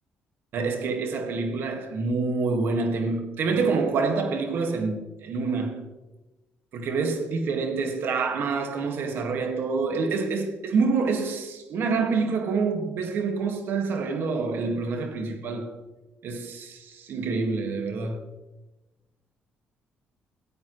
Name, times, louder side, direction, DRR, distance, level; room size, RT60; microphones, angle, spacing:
voice 1, 0.5-5.9 6.7-15.8 16.2-18.2, right 4 dB, 70° right, 1.9 m, -27 dB
18.0 x 8.7 x 3.2 m
cardioid pair, 85°, 4 cm